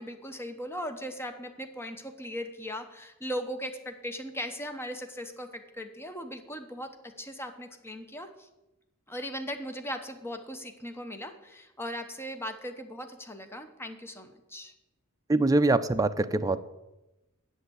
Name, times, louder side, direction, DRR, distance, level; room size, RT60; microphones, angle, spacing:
voice 1, 0.0-8.5 9.1-14.7, equal, 10° left, 6 dB, 1.0 m, -38 dB
voice 2, 15.3-16.6, right 2 dB, 15° right, 9 dB, 0.5 m, -24 dB
8.1 x 7.4 x 8.1 m, 0.96 s
head